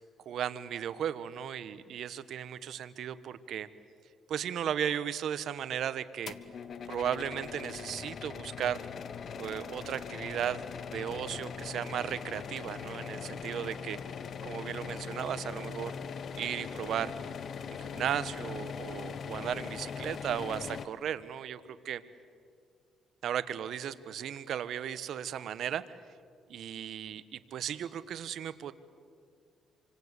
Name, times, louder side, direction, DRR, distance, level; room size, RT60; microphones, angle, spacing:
voice 1, 0.2-3.7 4.3-6.3 6.9-8.8 9.4-10.6 10.9-14.0 14.4-15.9 16.4-17.1 17.7-21.6 21.8-22.0 23.2-25.8 26.5-28.7, right 9 dB, 70° right, 14 dB, 1.2 m, -35 dB
sound 1, 6.3-20.9, left 6 dB, 55° left, 1.1 m, -41 dB
28.0 x 25.0 x 8.3 m, 2.2 s
cardioid pair, 90°, 0 cm